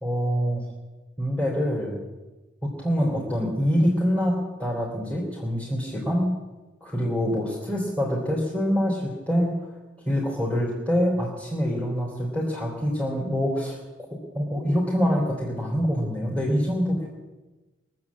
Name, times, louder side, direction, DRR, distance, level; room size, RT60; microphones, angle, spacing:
voice 1, 0.0-0.6 1.2-2.0 2.6-6.3 6.8-9.5 10.0-13.8 14.1-17.1, equal, 5° left, -4 dB, 3.4 m, -25 dB
22.0 x 7.5 x 8.5 m, 1.2 s
head